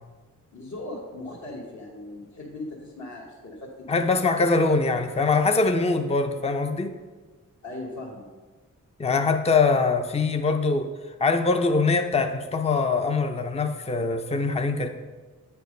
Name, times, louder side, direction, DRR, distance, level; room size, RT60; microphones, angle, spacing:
voice 1, 0.5-4.1 7.6-8.3, left 2 dB, 55° left, -6 dB, 1.5 m, -38 dB
voice 2, 3.9-6.9 9.0-10.9 11.2-14.9, left 3 dB, 20° left, 6 dB, 0.6 m, -23 dB
9.1 x 4.6 x 5.2 m, 1.4 s
cardioid pair, 60°, 34 cm